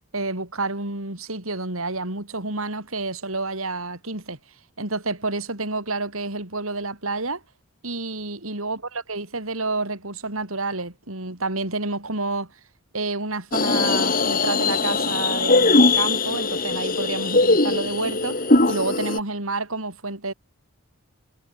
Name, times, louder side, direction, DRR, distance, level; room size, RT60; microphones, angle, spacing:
voice 1, 0.1-4.4 4.8-7.4 7.8-8.8 9.1-12.5 12.9-20.3, right 3 dB, 75° right, 4.7 m, -29 dB
sound 1, 13.5-19.2, left 3 dB, 40° left, 3.8 m, -20 dB
head